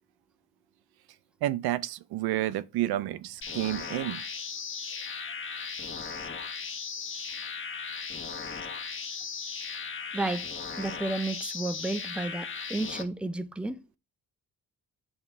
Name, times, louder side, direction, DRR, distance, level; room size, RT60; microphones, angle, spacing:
voice 1, 1.4-4.2, right 14 dB, 85° right, 0.5 m, -30 dB
sound 1, 3.4-13.0, left 5 dB, 35° left, 1.3 m, -37 dB
voice 2, 10.1-10.5 10.8-13.8, right 2 dB, 5° right, 0.6 m, -32 dB
8.6 x 3.6 x 3.5 m
cardioid pair, 80°, 37 cm